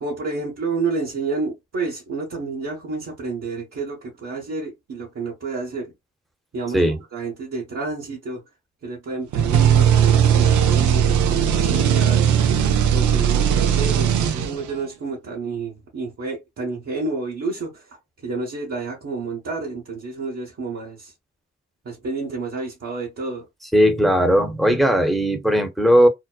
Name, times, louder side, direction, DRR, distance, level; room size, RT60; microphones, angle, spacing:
voice 1, 0.0-5.9 6.5-6.8 7.1-8.4 8.8-12.3 12.9-17.7 18.2-21.1 21.8-23.4, right 3 dB, 60° right, 1.0 m, -29 dB
sound 1, 9.3-14.8, right 8 dB, 80° right, 0.5 m, -18 dB
voice 2, 23.7-26.1, equal, ahead, 0.8 m, -17 dB
2.7 x 2.0 x 2.2 m
supercardioid pair, 40°, 29 cm